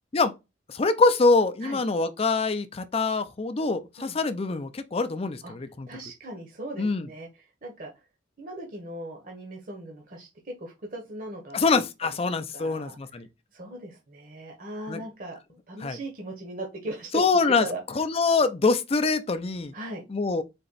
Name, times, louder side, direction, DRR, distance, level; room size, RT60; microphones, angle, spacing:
voice 1, 0.7-5.9 6.8-7.1 11.5-13.3 14.9-15.0 15.8-16.0 17.1-19.7 20.1-20.4, left 3 dB, 30° left, 0.5 m, -24 dB
voice 2, 5.9-7.9 8.4-11.7 12.5-13.0 13.5-17.2 17.6-17.8 19.7-20.0, right 1 dB, 45° right, 1.0 m, -38 dB
4.3 x 2.9 x 4.0 m
head